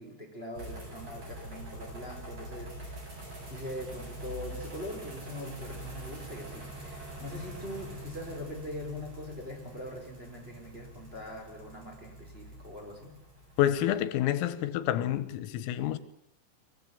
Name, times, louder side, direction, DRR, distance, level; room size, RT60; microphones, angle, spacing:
voice 1, 0.0-3.0 3.5-13.1, left 1 dB, 10° right, 4.7 m, -42 dB
sound 1, 0.5-14.1, right 1 dB, 30° right, 8.4 m, -44 dB
voice 2, 13.6-16.0, left 12 dB, 85° left, 3.9 m, -28 dB
23.5 x 20.5 x 8.6 m
omnidirectional pair, 6.0 m